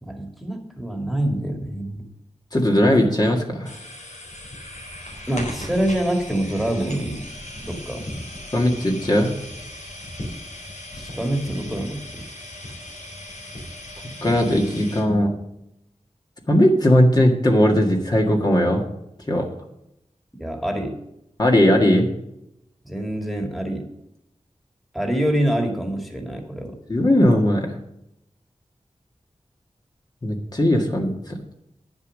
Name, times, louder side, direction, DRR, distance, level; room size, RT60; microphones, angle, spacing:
voice 1, 0.0-2.0 5.3-7.3 7.6-8.1 11.0-12.3 20.4-21.0 22.8-23.9 24.9-26.8, right 1 dB, ahead, 3 dB, 2.0 m, -26 dB
voice 2, 2.5-3.8 8.5-9.3 14.2-15.3 16.5-18.8 19.3-19.4 21.4-22.1 26.9-27.7 30.2-31.4, left 1 dB, 35° left, 0 dB, 1.8 m, -18 dB
sound 1, 3.7-15.0, left 1 dB, 90° left, 3.9 m, -37 dB
9.9 x 7.3 x 6.3 m, 0.82 s
wide cardioid pair, 100°, 12 cm